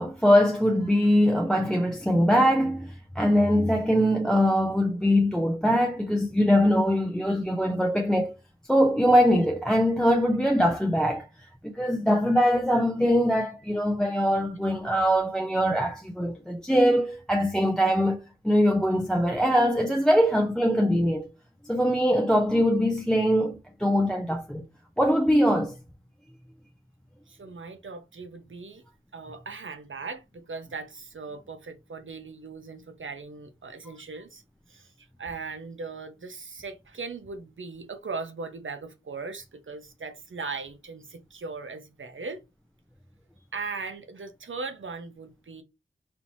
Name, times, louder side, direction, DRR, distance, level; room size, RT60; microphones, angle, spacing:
voice 1, 0.0-8.3 8.7-11.3 11.6-18.2 18.4-21.3 21.6-24.6 25.0-25.7, equal, 5° left, 0.5 m, -22 dB
voice 2, 27.3-28.8 29.1-34.4 34.7-34.9 35.2-42.4 43.5-45.6, right 4 dB, 75° right, 0.8 m, -38 dB
4.4 x 2.9 x 2.7 m
wide cardioid pair, 65°, 20 cm